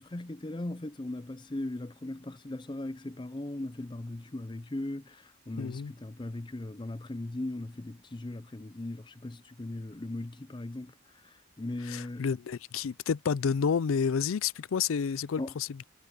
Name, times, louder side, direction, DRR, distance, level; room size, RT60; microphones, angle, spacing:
voice 1, 0.0-10.9 11.2-12.2 15.4-15.5, left 1 dB, 20° left, 0.5 m, -38 dB
voice 2, 5.6-5.9 11.9-15.8, left 6 dB, 80° left, 0.4 m, -30 dB
head